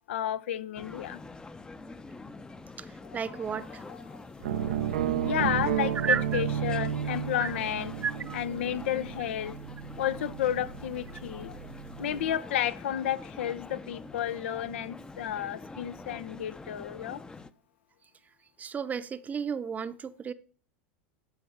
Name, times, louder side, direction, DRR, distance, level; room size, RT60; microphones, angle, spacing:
voice 1, 0.1-1.2 3.0-3.2 3.9-4.2 4.6-4.7 5.2-7.9 8.3-9.6 10.0-11.6 12.0-17.2, left 10 dB, 80° left, 0.7 m, -32 dB
sound 1, 0.8-17.5, left 3 dB, 15° left, 0.6 m, -45 dB
voice 2, 3.1-3.8 6.0-6.4 7.4-7.5 8.0-8.4 18.6-20.3, right 6 dB, 25° right, 0.7 m, -32 dB
sound 2, 4.4-12.3, right 9 dB, 85° right, 0.7 m, -33 dB
12.0 x 4.4 x 6.6 m
hypercardioid pair, 105°, 6 cm